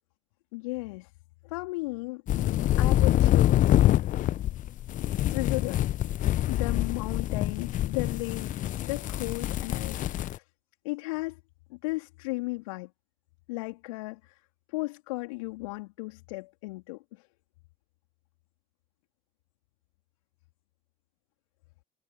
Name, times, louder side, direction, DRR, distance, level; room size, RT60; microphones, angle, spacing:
voice 1, 0.5-1.1 1.4-3.8 5.2-5.9 6.5-10.4 10.8-11.4 11.7-12.9 13.5-14.4 14.7-17.3, left 24 dB, 70° left, 3.7 m, -35 dB
sound 1, 2.3-10.4, left 13 dB, 45° left, 1.0 m, -25 dB
figure-of-eight pair, 60°, 18 cm